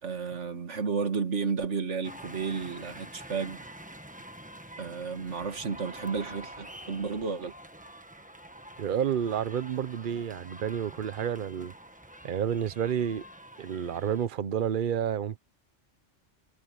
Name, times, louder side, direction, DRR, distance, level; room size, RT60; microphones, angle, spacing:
voice 1, 0.0-3.7 4.8-7.5, right 5 dB, 80° right, 2.1 m, -32 dB
sound 1, 2.0-14.3, right 1 dB, 5° right, 1.2 m, -47 dB
voice 2, 8.8-11.7 12.2-13.3 13.6-15.4, right 9 dB, 50° right, 0.9 m, -30 dB
omnidirectional pair, 1.2 m